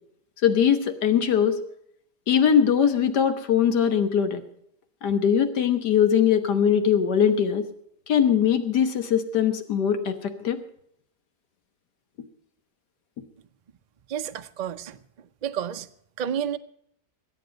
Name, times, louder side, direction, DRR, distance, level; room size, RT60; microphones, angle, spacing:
voice 1, 0.4-1.6 2.3-4.4 5.0-7.7 8.1-10.6, left 8 dB, 90° left, 1.8 m, -21 dB
voice 2, 14.1-15.9 16.2-16.6, right 9 dB, 80° right, 0.3 m, -31 dB
21.5 x 8.5 x 5.2 m
omnidirectional pair, 1.7 m